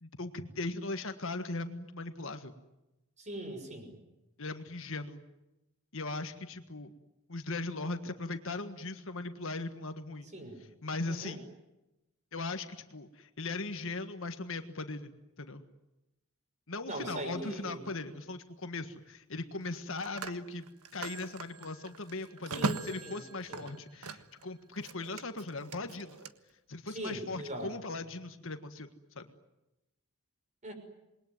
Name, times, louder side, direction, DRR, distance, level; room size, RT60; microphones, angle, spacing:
voice 1, 0.0-2.5 4.4-5.2 5.9-6.9 7.3-10.3 10.8-11.5 12.3-15.7 16.7-20.7 20.9-26.2 26.7-28.9 29.1-29.3, left 3 dB, 60° left, 8 dB, 1.6 m, -39 dB
voice 2, 3.2-3.9 10.3-10.6 11.1-11.3 16.9-17.9 22.5-23.2 23.5-23.7 26.9-27.7 30.6-30.7, right 1 dB, 30° right, 6 dB, 5.9 m, -40 dB
Telephone, 17.4-17.7 19.6-24.5 24.8-26.3, right 3 dB, 85° right, 1.5 m, -40 dB
28.0 x 22.0 x 9.5 m, 0.97 s
head